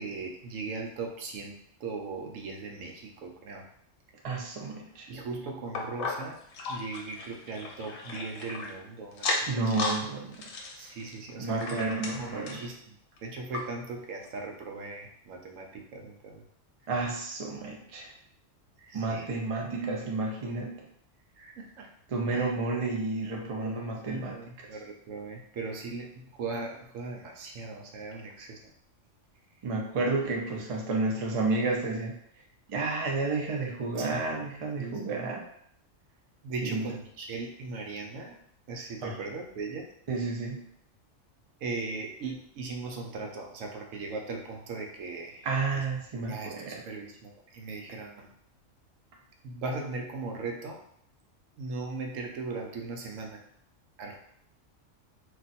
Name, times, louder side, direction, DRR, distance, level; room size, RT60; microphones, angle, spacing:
voice 1, 0.0-3.6 5.1-6.4 6.7-9.8 10.7-11.8 12.2-12.8 13.2-16.4 18.8-19.4 21.4-21.9 22.3-22.5 23.4-23.7 24.0-28.6 30.2-30.3 34.0-34.3 34.8-35.3 36.4-38.4 38.7-39.8 41.6-45.5 45.7-45.8 46.2-48.3 49.4-50.8 51.6-53.5 54.0-54.2, right 3 dB, 85° right, 2 dB, 1.0 m, -38 dB
voice 2, 4.2-5.1 9.5-10.5 11.4-12.6 16.9-18.1 18.9-20.9 22.1-24.4 29.6-32.1 32.7-35.4 36.6-36.8 39.0-39.2 40.1-40.7 45.4-46.8, right 3 dB, 45° right, 0 dB, 0.4 m, -31 dB
sound 1, 5.7-8.7 9.1-10.0 10.3-12.7 13.2-13.3 13.5-13.6 14.3-14.4, left 3 dB, 90° left, 1.0 m, -35 dB
2.5 x 2.4 x 4.1 m, 0.69 s
omnidirectional pair, 1.3 m